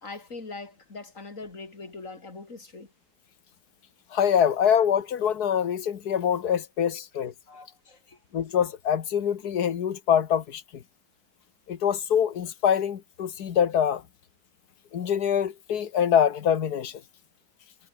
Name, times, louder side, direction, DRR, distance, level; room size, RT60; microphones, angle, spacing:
voice 1, 0.0-2.9 7.5-8.2, left 3 dB, 55° left, 4.2 m, -42 dB
voice 2, 4.1-7.3 8.3-10.8 11.7-14.0 14.9-17.0, left 8 dB, 85° left, 1.8 m, -24 dB
omnidirectional pair, 1.6 m